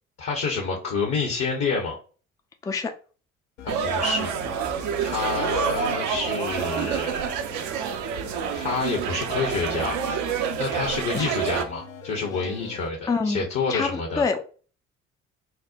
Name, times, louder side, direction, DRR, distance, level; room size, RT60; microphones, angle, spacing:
voice 1, 0.2-2.0 3.6-4.3 5.0-7.4 8.5-10.0 10.6-14.3, left 4 dB, 45° left, 1.0 m, -28 dB
sound 1, 3.6-12.9, left 7 dB, 70° left, 0.7 m, -42 dB
sound 2, 3.7-11.6, right 7 dB, 55° right, 0.6 m, -28 dB
voice 2, 13.1-13.4 13.7-14.4, left 4 dB, 10° left, 0.4 m, -26 dB
4.4 x 2.1 x 2.5 m
figure-of-eight pair, 50°, 37 cm